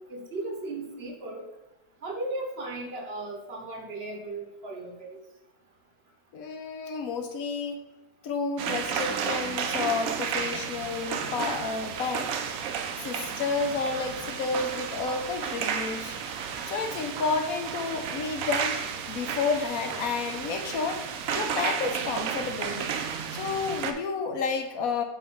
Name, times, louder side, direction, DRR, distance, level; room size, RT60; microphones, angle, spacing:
voice 1, 0.1-1.5 2.0-5.2, right 2 dB, 45° right, 2 dB, 1.0 m, -36 dB
voice 2, 6.3-7.8 8.2-12.3 13.0-16.2 16.7-18.7 19.1-21.0 21.3-22.9 23.3-25.0, left 4 dB, 65° left, 6 dB, 1.1 m, -30 dB
sound 1, 8.6-23.9, right 7 dB, 70° right, 0.9 m, -32 dB
6.6 x 3.2 x 5.5 m, 1.0 s
omnidirectional pair, 1.8 m